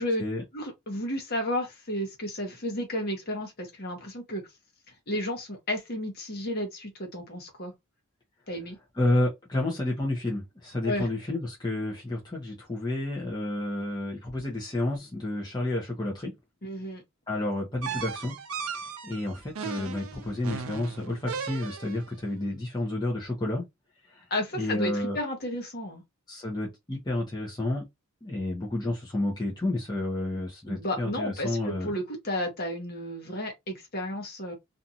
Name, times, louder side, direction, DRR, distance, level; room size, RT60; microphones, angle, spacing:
voice 1, 0.5-4.4 5.1-7.7 8.5-8.8 10.8-11.1 16.6-17.0 24.3-26.0 30.7-34.5, left 1 dB, 45° left, 1.0 m, -32 dB
voice 2, 9.0-16.3 17.3-18.3 18.6-23.7 24.1-24.2 24.5-25.2 26.3-27.8 28.2-31.9, left 1 dB, 20° left, 0.7 m, -30 dB
sound 1, 17.8-22.1, right 6 dB, 65° right, 0.5 m, -36 dB
2.6 x 2.3 x 2.7 m
head